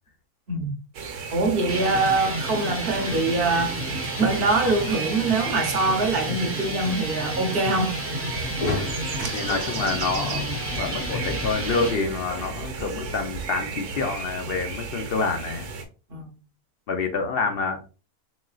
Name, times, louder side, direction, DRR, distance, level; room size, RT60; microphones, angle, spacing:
sound 1, 0.9-15.8, right 5 dB, 75° right, 1.2 m, -35 dB
voice 1, 1.3-3.8 4.2-7.9 9.2-9.4 16.1-16.3, right 3 dB, 45° right, 0.9 m, -24 dB
sound 2, 1.6-12.0, equal, 10° right, 0.9 m, -32 dB
sound 3, 8.3-13.5, left 1 dB, 85° left, 1.9 m, -35 dB
voice 2, 9.3-15.7 16.9-17.9, left 4 dB, 55° left, 0.7 m, -27 dB
4.1 x 3.7 x 2.3 m
omnidirectional pair, 1.6 m